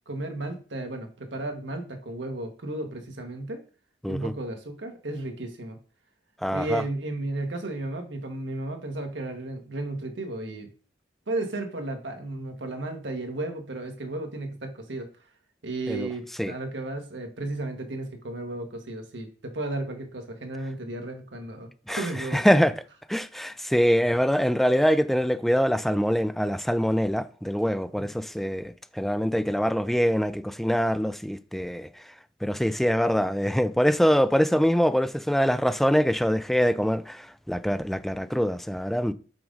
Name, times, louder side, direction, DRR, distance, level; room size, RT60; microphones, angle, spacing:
voice 1, 0.1-3.6 4.1-5.8 6.5-10.7 11.3-15.1 15.6-22.6 27.9-28.1, right 2 dB, 80° right, 1.3 m, -34 dB
voice 2, 6.4-6.8 15.9-16.1 16.4-16.5 21.9-22.0 22.3-22.7 23.1-31.9 32.4-39.1, equal, ahead, 0.3 m, -24 dB
5.9 x 3.7 x 5.3 m
head